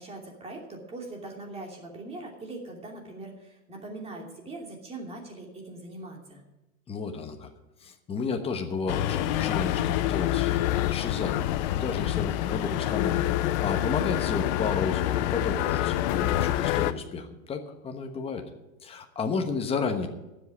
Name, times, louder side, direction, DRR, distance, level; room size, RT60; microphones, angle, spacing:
voice 1, 0.0-6.4, right 2 dB, 15° right, 0 dB, 2.8 m, -41 dB
voice 2, 6.9-7.5 7.8-11.5 11.7-18.5 18.8-20.1, left 5 dB, 15° left, 5 dB, 1.2 m, -32 dB
sound 1, 8.9-16.9, left 14 dB, 35° left, 0.5 m, -27 dB
12.0 x 7.7 x 9.3 m, 1.0 s
hypercardioid pair, 140°, 42 cm